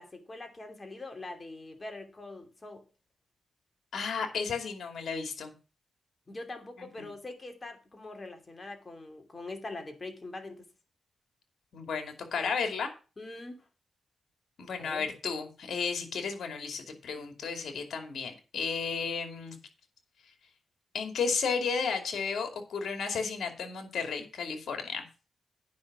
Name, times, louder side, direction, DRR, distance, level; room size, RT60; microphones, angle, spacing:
voice 1, 0.0-2.8 6.3-10.6 13.2-13.7 14.8-15.0, left 2 dB, 35° left, 5 dB, 2.9 m, -43 dB
voice 2, 3.9-5.5 6.8-7.1 11.7-12.9 14.6-19.6 20.9-25.1, left 5 dB, 75° left, 6 dB, 2.6 m, -33 dB
9.5 x 5.8 x 7.3 m, 0.34 s
cardioid pair, 65°, 0 cm